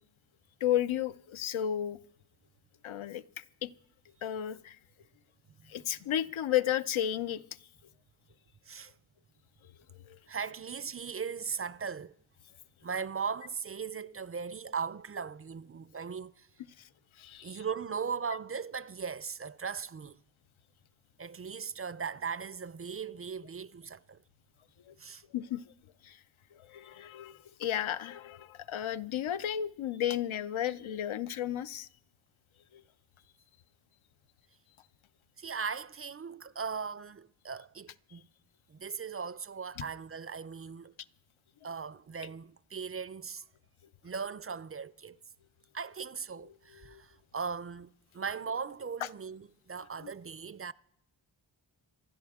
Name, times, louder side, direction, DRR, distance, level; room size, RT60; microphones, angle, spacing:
voice 1, 0.6-2.0 2.8-3.7 4.2-4.8 5.7-7.4 10.1-10.2 16.8-16.9 17.2-17.6 24.9-25.0 25.3-25.6 26.0-26.2 26.5-31.9 32.7-32.8 39.8-39.9 46.7-47.0 50.0-50.1, left 11 dB, 85° left, 0.6 m, -33 dB
voice 2, 10.3-12.1 12.8-16.5 17.4-20.2 21.2-24.2 25.0-25.2 35.4-38.3 38.7-40.9 41.6-43.4 44.0-45.2 45.7-50.7, right 6 dB, 30° right, 0.4 m, -38 dB
26.5 x 11.5 x 3.6 m
cardioid pair, 45°, 47 cm